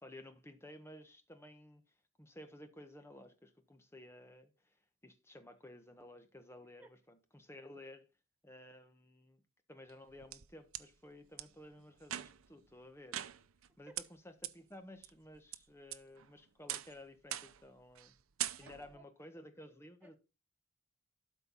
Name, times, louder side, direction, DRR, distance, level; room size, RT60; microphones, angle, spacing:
voice 1, 0.0-1.8 2.2-8.1 8.4-9.4 9.7-13.2 13.8-18.1 18.6-20.1, left 1 dB, 10° left, 1.2 m, -55 dB
sound 1, 9.9-10.8 11.4-11.5 12.0-12.5 13.1-13.7 14.0-14.1 14.4-14.5 15.0-15.6 15.9-16.3 16.7-17.0 17.3-17.6 17.9-18.1 18.4-19.0, right 13 dB, 80° right, 0.6 m, -42 dB
voice 2, 18.6-19.0 20.0-20.1, right 2 dB, 10° right, 1.2 m, -57 dB
12.5 x 4.5 x 5.5 m
head